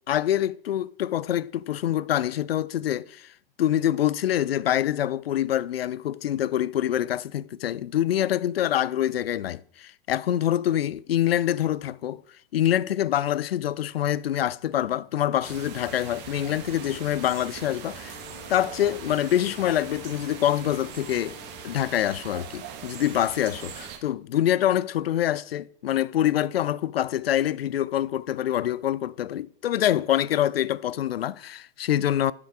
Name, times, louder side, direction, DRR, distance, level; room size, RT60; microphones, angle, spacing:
voice 1, 0.1-3.3 3.6-12.2 12.5-18.2 18.5-21.4 21.6-32.3, left 11 dB, 75° left, 0.5 m, -25 dB
sound 1, 15.4-24.0, right 8 dB, 35° right, 1.6 m, -41 dB
Wind instrument woodwind instrument, 18.0-22.4, left 6 dB, 20° left, 1.4 m, -49 dB
10.5 x 5.7 x 4.7 m
figure-of-eight pair, 100°, 30 cm